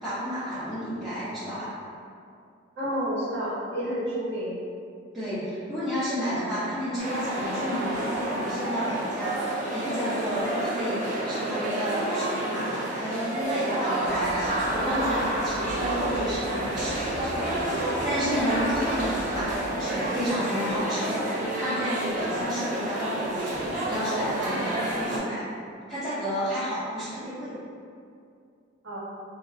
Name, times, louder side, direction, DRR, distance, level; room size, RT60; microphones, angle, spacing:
voice 1, 0.0-1.7 5.1-11.0 11.2-23.5 23.8-25.4 25.9-27.5, equal, ahead, -17 dB, 0.7 m, -31 dB
voice 2, 2.8-4.6 28.8-29.0, equal, 85° right, -11 dB, 1.1 m, -30 dB
sound 1, 7.0-25.2, right 1 dB, 40° right, 0.5 m, -29 dB
sound 2, 14.0-19.6, equal, 45° left, 0.4 m, -40 dB
2.4 x 2.2 x 3.7 m, 2.3 s
head